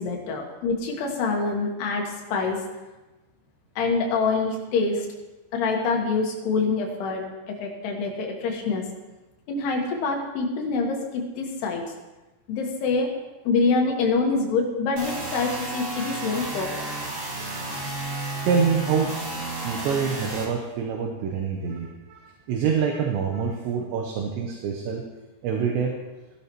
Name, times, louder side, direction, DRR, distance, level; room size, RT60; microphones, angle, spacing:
voice 1, 0.0-2.6 3.8-5.1 5.5-8.8 9.5-11.8 12.5-13.1 13.4-16.7, left 4 dB, 65° left, 1 dB, 3.1 m, -25 dB
sound 1, 15.0-20.4, right 2 dB, 45° right, 1.3 m, -32 dB
voice 2, 18.5-19.1 19.6-25.0 25.4-25.9, right 6 dB, 75° right, 2 dB, 2.8 m, -26 dB
16.0 x 11.5 x 3.1 m, 1.1 s
omnidirectional pair, 5.7 m